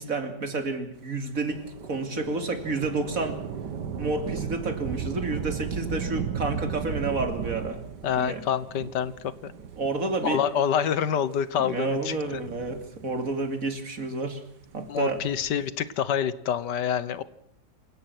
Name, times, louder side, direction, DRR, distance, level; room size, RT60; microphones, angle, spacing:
voice 1, 0.0-3.4 4.0-7.8 8.2-8.4 9.8-10.4 11.6-14.4 14.7-15.2, right 3 dB, 55° right, 7 dB, 3.0 m, -30 dB
Thunder / Rain, 1.4-10.3 11.1-11.2 12.1-13.4 14.9-15.7, right 7 dB, 80° right, 1.9 m, -35 dB
voice 2, 8.0-9.1 9.4-9.5 10.2-12.2 14.9-17.2, left 8 dB, 90° left, 16 dB, 1.7 m, -26 dB
27.5 x 17.5 x 6.1 m, 0.74 s
omnidirectional pair, 1.8 m